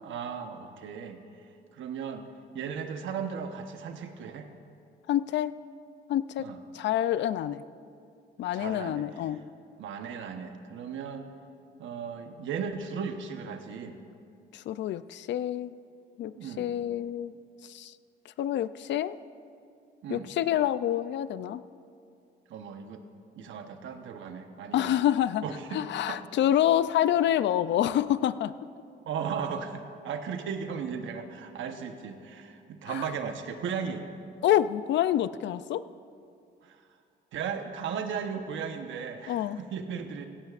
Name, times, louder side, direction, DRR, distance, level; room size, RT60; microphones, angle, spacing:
voice 1, 0.0-1.2 1.7-2.3 2.5-4.5 6.4-6.6 8.5-9.1 9.8-11.3 11.8-14.0 16.3-16.7 20.0-20.3 22.5-23.0 23.4-24.9 25.4-26.3 29.0-34.1 36.6-36.8 37.3-40.3, right 6 dB, 75° right, 6 dB, 1.1 m, -36 dB
voice 2, 5.1-5.5 6.1-6.5 6.7-7.6 8.4-9.4 14.5-15.7 16.2-17.3 17.6-17.9 18.4-19.2 20.1-21.6 24.7-25.4 25.7-28.5 32.9-33.1 34.4-35.8 39.3-39.6, left 11 dB, 65° left, 15 dB, 0.4 m, -27 dB
16.0 x 16.0 x 2.5 m, 2.4 s
cardioid pair, 90°, 20 cm